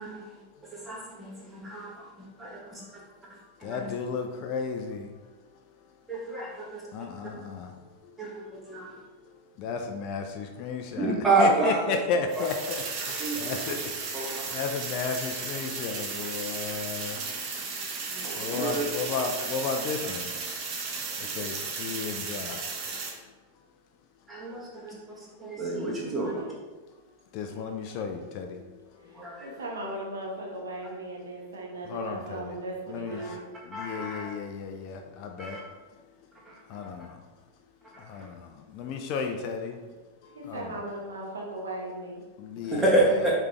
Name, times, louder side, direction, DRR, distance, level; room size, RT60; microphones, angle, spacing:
voice 1, 0.0-3.0 3.3-3.9 6.1-6.8 8.2-9.0 11.0-11.9 12.4-12.5 13.2-13.6 14.1-14.7 18.1-18.8 19.8-19.9 21.2-21.5 24.3-24.9 25.4-26.4 29.1-29.7 33.1-33.3 33.7-34.3 35.4-35.6 36.4-36.5 37.9-38.3 42.7-43.3, right 2 dB, 10° right, -5 dB, 1.3 m, -29 dB
voice 2, 3.6-5.1 6.9-7.7 9.6-11.1 11.4-13.9 14.5-17.2 18.4-20.3 21.2-22.6 27.3-28.6 31.8-32.6 32.9-33.3 33.7-35.6 36.7-37.2 38.0-39.8 40.4-40.8 42.4-43.0, left 5 dB, 40° left, 4 dB, 0.4 m, -33 dB
sound 1, 12.3-23.1, right 4 dB, 40° right, 0.8 m, -34 dB
voice 3, 29.4-33.4 40.4-42.2, right 1 dB, 70° right, -2 dB, 1.0 m, -37 dB
4.9 x 3.3 x 3.0 m, 1.3 s
figure-of-eight pair, 90°, 0 cm